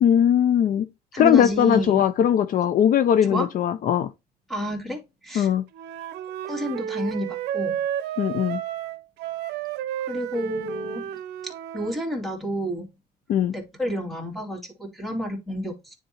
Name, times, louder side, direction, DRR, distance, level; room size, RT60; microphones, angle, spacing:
voice 1, 0.0-0.9 1.2-4.1 5.3-5.6 8.2-8.6 13.3-13.5, left 9 dB, 55° left, 0.5 m, -20 dB
voice 2, 1.1-2.0 3.3-3.5 4.5-5.5 6.5-7.8 10.1-11.0 11.7-12.9 13.5-15.9, equal, ahead, 2.4 m, -30 dB
Wind instrument woodwind instrument, 5.7-12.0, right 10 dB, 80° right, 0.6 m, -31 dB
9.7 x 3.7 x 2.8 m
cardioid pair, 110°, 17 cm